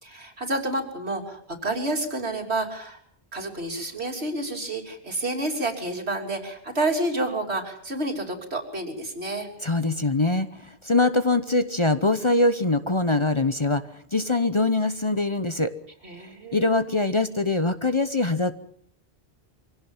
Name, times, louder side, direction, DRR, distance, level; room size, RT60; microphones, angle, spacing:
voice 1, 0.0-3.0 3.3-9.5 16.0-16.7, right 2 dB, 75° right, 2 dB, 3.7 m, -29 dB
voice 2, 9.6-15.7 16.5-18.5, left 2 dB, 30° left, 10 dB, 0.9 m, -23 dB
24.0 x 17.5 x 7.3 m, 0.64 s
omnidirectional pair, 1.1 m